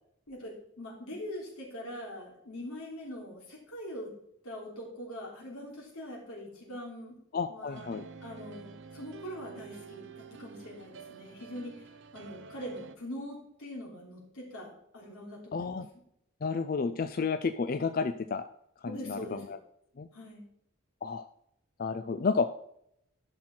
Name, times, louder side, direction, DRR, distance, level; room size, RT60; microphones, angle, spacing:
voice 1, 0.3-4.1 4.4-7.2 7.5-7.9 8.2-11.9 12.1-15.8 18.8-19.4 20.1-20.4, equal, 85° left, -2 dB, 3.3 m, -43 dB
voice 2, 7.3-8.1 15.5-15.9 16.4-18.4 18.8-19.6 20.0-20.1 21.0-21.3 21.8-22.5, left 5 dB, 40° left, 9 dB, 0.4 m, -31 dB
sound 1, 7.7-13.0, right 5 dB, 55° right, 0.6 m, -49 dB
11.0 x 6.1 x 4.4 m, 0.73 s
head